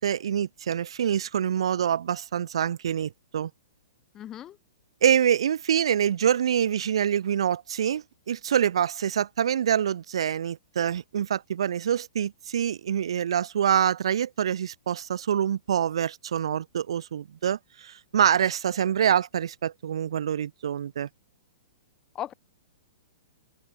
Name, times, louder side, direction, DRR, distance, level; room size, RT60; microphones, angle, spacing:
voice 1, 0.0-3.5 5.0-21.1, right 9 dB, 70° right, 2.7 m, -26 dB
voice 2, 4.1-4.6 22.1-22.3, left 11 dB, 15° left, 2.0 m, -36 dB
hypercardioid pair, 170°, 3 cm